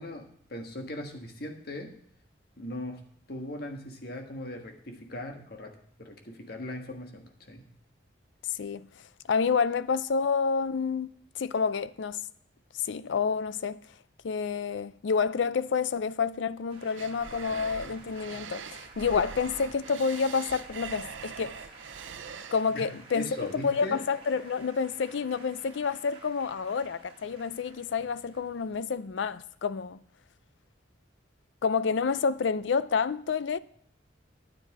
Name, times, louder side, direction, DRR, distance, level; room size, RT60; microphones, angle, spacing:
voice 1, 0.0-1.9 2.6-3.0 3.3-7.7 22.7-22.9 23.1-24.0, left 1 dB, 55° left, 1.5 m, -39 dB
voice 2, 8.5-8.9 9.3-12.2 12.8-13.8 14.2-21.6 22.5-30.0 31.6-33.6, left 5 dB, 75° left, 0.4 m, -29 dB
Male speech man speaking, 16.7-28.9, right 3 dB, 30° right, 1.9 m, -52 dB
sound 1, 17.0-22.6, right 6 dB, 85° right, 0.6 m, -43 dB
9.8 x 9.3 x 4.7 m
head